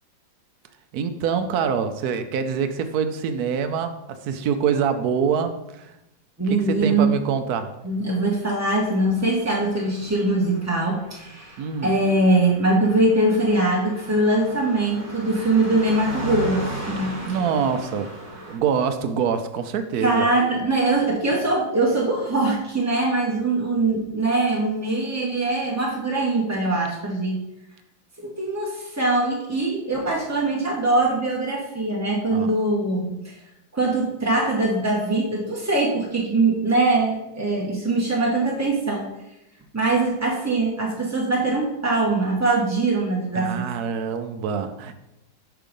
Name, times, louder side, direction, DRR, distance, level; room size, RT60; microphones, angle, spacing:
voice 1, 0.9-5.9 6.8-7.7 11.6-11.9 17.0-18.1 18.5-20.3 32.3-32.5 43.4-45.0, right 7 dB, 70° right, 8 dB, 1.0 m, -25 dB
voice 2, 6.4-7.1 7.8-17.1 20.0-27.4 28.2-33.4 33.7-39.1 39.7-43.7, right 2 dB, 25° right, -3 dB, 0.3 m, -22 dB
Car passing by, 8.7-18.6, right 1 dB, 70° left, 2.3 m, -37 dB
6.0 x 4.6 x 5.1 m, 0.89 s
omnidirectional pair, 2.0 m